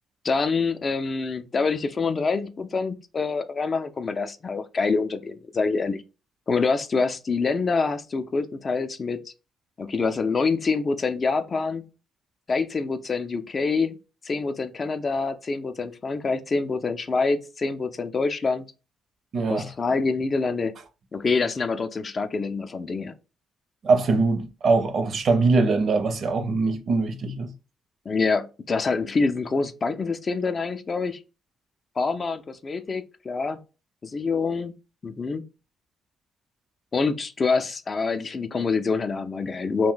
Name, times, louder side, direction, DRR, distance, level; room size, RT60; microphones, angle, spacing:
voice 1, 0.2-6.0 6.5-9.3 9.8-11.9 12.5-14.0 14.2-18.6 19.5-20.7 21.1-23.1 28.1-31.2 32.0-33.6 34.0-34.7 35.0-35.4 36.9-39.9, left 4 dB, 40° left, 0.3 m, -26 dB
voice 2, 19.3-19.7 23.8-27.5, right 3 dB, 55° right, 0.5 m, -22 dB
2.5 x 2.1 x 3.7 m
cardioid pair, 90°, 0 cm